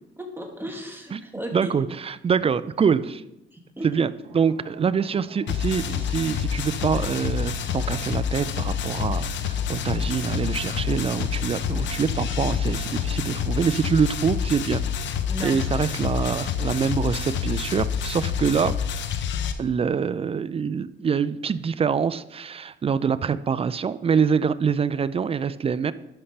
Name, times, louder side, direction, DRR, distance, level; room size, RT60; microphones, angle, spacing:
voice 1, 0.2-1.7 3.5-4.0 15.3-15.7, equal, 10° right, 2 dB, 1.4 m, -35 dB
voice 2, 1.5-3.2 3.8-14.8 15.4-18.8 19.6-25.9, right 6 dB, 30° right, 15 dB, 0.4 m, -25 dB
sound 1, 4.2-13.6, right 5 dB, 80° right, 1.1 m, -46 dB
sound 2, 5.5-19.5, left 7 dB, 70° left, 0.7 m, -27 dB
11.5 x 5.4 x 3.3 m, 0.89 s
cardioid pair, 90°, 20 cm